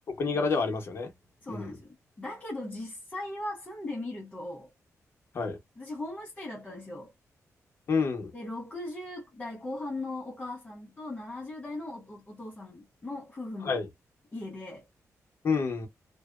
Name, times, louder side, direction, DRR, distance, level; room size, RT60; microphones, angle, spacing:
voice 1, 0.2-1.1 1.5-1.7 5.3-5.6 7.9-8.3 13.6-13.9 15.4-15.9, left 4 dB, 45° left, 0.9 m, -28 dB
voice 2, 1.4-4.7 5.8-7.1 8.3-13.8 14.3-14.9, left 2 dB, 20° left, 0.7 m, -39 dB
2.7 x 2.1 x 2.3 m
wide cardioid pair, 175°, 6 cm